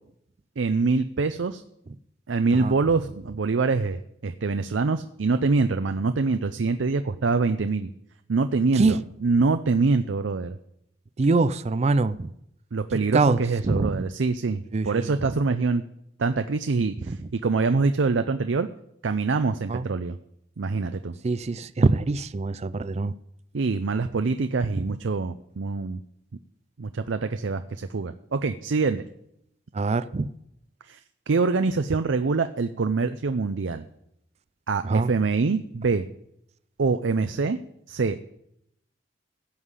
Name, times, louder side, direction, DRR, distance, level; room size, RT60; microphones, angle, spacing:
voice 1, 0.6-1.6 2.3-7.9 8.3-10.6 12.7-15.8 16.2-18.7 19.0-20.2 20.6-21.1 23.5-26.0 26.8-29.0 30.9-31.0 31.3-33.8 34.7-36.1 36.8-37.6 37.9-38.2, right 4 dB, 90° right, 0.6 m, -25 dB
voice 2, 11.2-12.3 13.1-13.4 13.7-14.0 14.7-14.9 17.1-17.2 19.7-19.9 21.2-23.1 29.7-30.3 34.8-35.1, right 3 dB, 35° right, 0.4 m, -23 dB
16.0 x 5.6 x 8.2 m
head